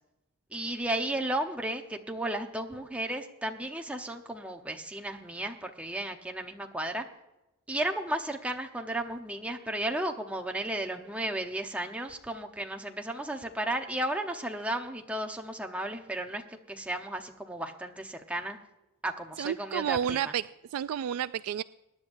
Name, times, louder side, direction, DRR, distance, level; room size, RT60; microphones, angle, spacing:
voice 1, 0.5-7.0 7.7-18.6 19.0-20.2, right 1 dB, 5° right, 3 dB, 0.9 m, -34 dB
voice 2, 19.4-21.6, right 9 dB, 75° right, 15 dB, 0.3 m, -31 dB
22.5 x 10.5 x 2.6 m, 0.97 s
head